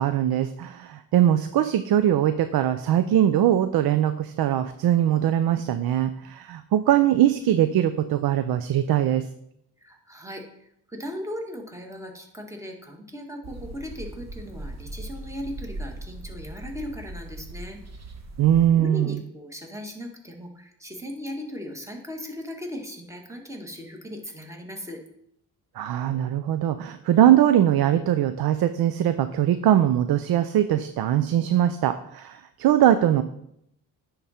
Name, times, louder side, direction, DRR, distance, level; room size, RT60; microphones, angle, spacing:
voice 1, 0.0-9.3 18.4-19.2 25.7-33.2, right 11 dB, 60° right, 10 dB, 0.5 m, -21 dB
voice 2, 9.8-17.8 18.7-25.0, left 1 dB, 5° right, 2 dB, 1.6 m, -38 dB
sound 1, 13.4-18.7, right 2 dB, 40° right, 1.1 m, -39 dB
9.8 x 3.8 x 4.3 m, 0.75 s
supercardioid pair, 60°, 41 cm